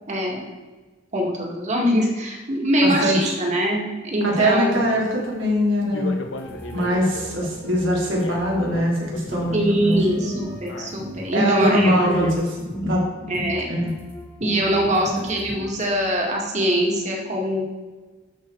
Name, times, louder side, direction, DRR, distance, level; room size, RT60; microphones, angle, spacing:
voice 1, 0.1-0.4 1.1-4.8 9.5-11.9 13.3-13.7 14.4-17.6, equal, 40° right, -1 dB, 2.1 m, -23 dB
voice 2, 2.8-3.3 4.2-6.2 6.7-10.0 11.3-13.0 13.3-13.4 13.7-13.9, equal, 90° right, -3 dB, 3.3 m, -22 dB
sound 1, 4.7-12.3, left 1 dB, 80° left, 1.1 m, -35 dB
sound 2, 6.3-11.3 11.6-13.0 13.3-15.9, equal, 10° left, 1.2 m, -36 dB
13.0 x 5.5 x 4.7 m, 1.3 s
head